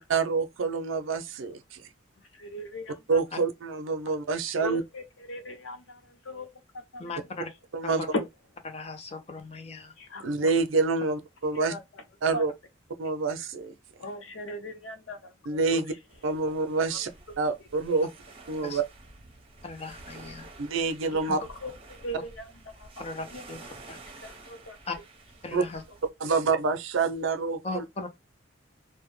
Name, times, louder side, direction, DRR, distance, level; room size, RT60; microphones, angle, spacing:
voice 1, 0.0-1.8 3.1-4.8 7.7-8.0 10.2-11.7 12.2-12.5 13.0-13.7 15.5-15.9 16.2-17.1 17.4-18.1 18.5-18.8 20.6-21.4 25.5-25.6 26.2-27.8, right 4 dB, 75° right, 0.5 m, -27 dB
voice 2, 2.3-3.2 4.6-6.5 6.9-7.1 8.1-8.2 10.0-10.5 11.5-12.0 12.3-12.5 14.0-16.0 16.9-17.0 21.1-23.4 23.9-24.8 25.6-25.7, left 1 dB, 75° left, 0.7 m, -39 dB
voice 3, 7.0-7.5 7.8-8.1 8.7-9.9 18.6-18.8 19.6-20.5 23.0-23.6 23.9-24.0 24.9-25.0 25.4-25.8 27.6-28.1, left 3 dB, 30° left, 0.5 m, -37 dB
sound 1, 16.1-26.1, right 2 dB, 30° right, 0.7 m, -50 dB
2.2 x 2.0 x 3.0 m
head